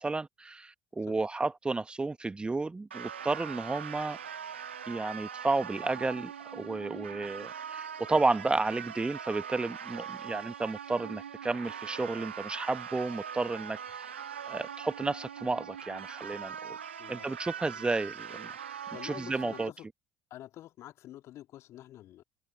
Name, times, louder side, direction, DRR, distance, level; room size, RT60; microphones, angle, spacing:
voice 1, 0.0-4.2 4.9-14.1 14.5-16.8 17.1-18.5 19.0-19.7, right 3 dB, 15° right, 1.4 m, -32 dB
sound 1, 2.9-19.7, right 8 dB, 80° right, 2.0 m, -42 dB
voice 2, 17.0-17.3 17.8-17.9 18.9-19.9 20.3-22.2, left 13 dB, 50° left, 2.3 m, -47 dB
figure-of-eight pair, 60°, 6 cm